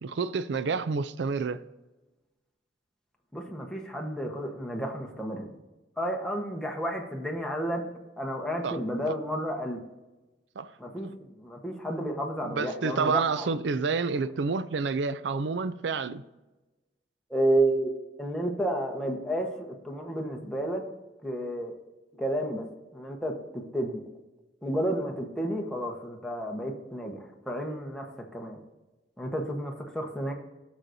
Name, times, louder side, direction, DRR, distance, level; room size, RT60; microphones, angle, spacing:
voice 1, 0.0-1.6 8.6-8.8 9.1-9.2 10.6-10.7 12.4-16.2, right 4 dB, 70° right, 0.4 m, -29 dB
voice 2, 3.3-5.5 6.0-7.8 8.2-9.8 10.8-13.5 17.3-17.9 18.2-19.5 19.8-20.8 21.2-21.7 22.2-22.6 22.9-24.0 24.6-28.6 29.2-30.3, right 1 dB, 5° left, 1.1 m, -31 dB
16.0 x 6.3 x 2.7 m
head